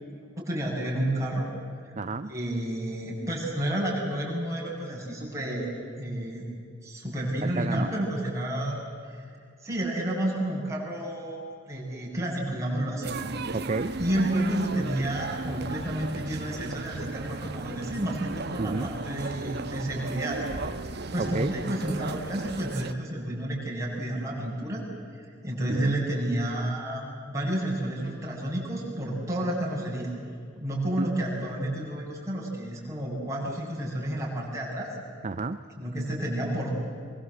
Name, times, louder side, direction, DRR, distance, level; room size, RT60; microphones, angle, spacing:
voice 1, 0.3-1.5 1.9-2.0 2.3-5.7 6.0-6.5 6.8-8.8 9.0-9.2 9.6-13.2 14.0-20.5 20.9-24.8 25.2-30.1 30.6-34.9 35.8-36.7, right 1 dB, 15° right, -4 dB, 7.1 m, -30 dB
voice 2, 2.0-2.3 7.4-7.9 13.5-13.9 18.6-18.9 21.2-21.5 25.7-26.0 31.0-31.1 35.2-35.6, right 3 dB, 35° right, 10 dB, 0.6 m, -30 dB
sound 1, 13.0-22.9, right 3 dB, 55° right, 1.1 m, -35 dB
24.0 x 23.5 x 8.0 m, 2.3 s
head